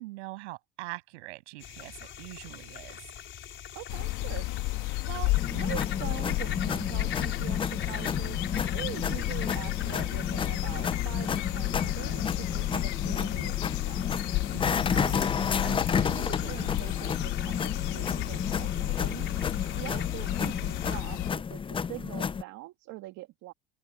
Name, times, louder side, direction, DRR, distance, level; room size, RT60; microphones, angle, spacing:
voice 1, 0.0-3.0 14.5-14.9, right 22 dB, 80° right, 7.3 m, -43 dB
sound 1, 1.6-21.0, left 9 dB, 35° left, 4.8 m, -43 dB
voice 2, 3.7-4.5 5.1-14.2 14.9-15.2 15.6-19.3 19.7-23.5, right 19 dB, 55° right, 2.3 m, -43 dB
sound 2, 3.9-21.3, left 19 dB, 60° left, 1.5 m, -32 dB
sound 3, 5.4-22.4, left 6 dB, 15° left, 0.5 m, -32 dB
open air
supercardioid pair, 110°, 34 cm